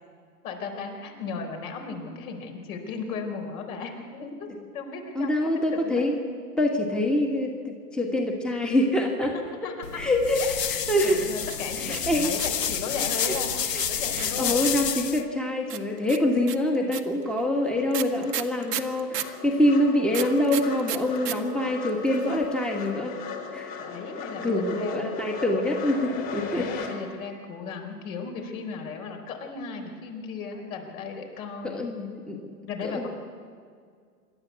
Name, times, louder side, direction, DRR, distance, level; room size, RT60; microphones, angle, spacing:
voice 1, 0.4-5.4 5.7-6.1 9.6-10.0 11.0-13.6 13.9-14.6 23.8-25.1 26.5-31.9 32.7-33.1, left 5 dB, 60° left, 3 dB, 4.4 m, -36 dB
voice 2, 5.1-6.2 6.6-9.3 9.9-11.3 11.8-12.3 13.2-13.3 13.7-23.2 23.5-23.7 24.4-26.9 31.6-32.5 32.8-33.1, left 1 dB, ahead, 1 dB, 1.6 m, -25 dB
sound 1, 9.8-15.2, left 8 dB, 85° left, 1.3 m, -29 dB
sound 2, 11.0-12.7 13.3-14.9 15.7-19.4 20.1-21.4 21.6-21.7 21.9-22.4, right 11 dB, 75° right, 1.5 m, -34 dB
sound 3, 16.8-16.9 17.2-26.9, left 6 dB, 40° left, 4.0 m, -38 dB
26.5 x 11.5 x 8.4 m, 2.1 s
hypercardioid pair, 125°, 48 cm